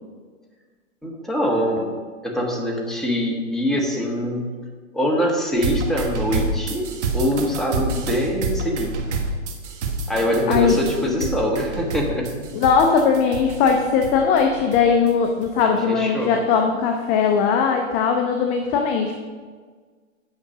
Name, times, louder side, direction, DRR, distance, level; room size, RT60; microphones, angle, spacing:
voice 1, 1.0-1.9 2.2-4.5 4.9-9.0 10.1-12.3 15.6-16.3, equal, ahead, -1 dB, 1.3 m, -24 dB
sound 1, 5.5-15.1 15.4-15.6, right 3 dB, 65° right, 1.7 m, -28 dB
voice 2, 10.5-11.3 12.5-19.1, left 6 dB, 20° left, 4 dB, 0.4 m, -19 dB
8.8 x 5.8 x 6.4 m, 1.5 s
hypercardioid pair, 140°, 38 cm